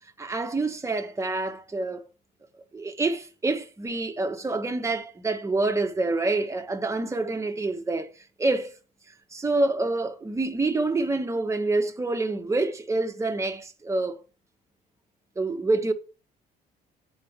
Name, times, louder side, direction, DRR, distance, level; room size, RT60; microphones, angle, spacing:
voice 1, 0.2-2.0 2.7-8.1 8.4-8.7 9.3-14.2 15.3-15.9, right 2 dB, 15° right, 1.4 m, -27 dB
9.0 x 4.6 x 7.4 m
cardioid pair, 110°, 17 cm